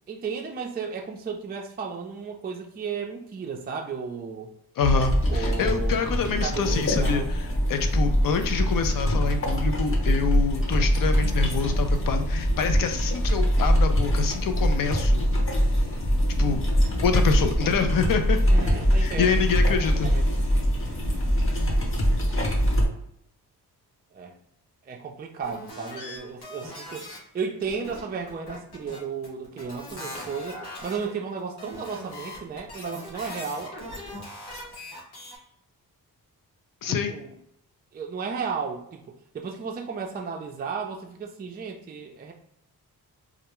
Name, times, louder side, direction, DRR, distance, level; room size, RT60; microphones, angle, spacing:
voice 1, 0.1-4.5 5.3-7.3 18.5-19.4 20.0-20.2 24.1-24.3 24.8-33.7 36.9-37.4 37.9-42.3, right 5 dB, 25° right, 1 dB, 0.4 m, -34 dB
voice 2, 4.8-15.3 16.4-16.6 17.0-18.4 19.0-20.1 36.8-37.1, left 5 dB, 60° left, 7 dB, 0.5 m, -26 dB
sound 1, 4.8-22.9, equal, 35° left, 0.9 m, -23 dB
sound 2, 25.4-27.2 27.4-35.4, left 1 dB, 90° left, 0.9 m, -40 dB
2.4 x 2.2 x 2.9 m, 0.75 s
cardioid pair, 65°, 38 cm